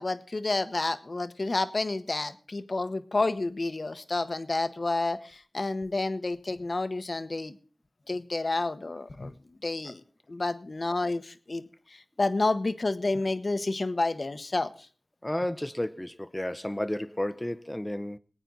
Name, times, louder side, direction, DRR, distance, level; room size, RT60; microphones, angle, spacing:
voice 1, 0.0-5.2 5.5-7.5 8.1-9.3 9.6-10.0 10.3-11.7 12.2-14.7, left 2 dB, 60° left, 1.1 m, -29 dB
voice 2, 15.2-18.2, left 1 dB, 15° left, 0.8 m, -32 dB
21.0 x 9.0 x 3.9 m
wide cardioid pair, 45°, 0 cm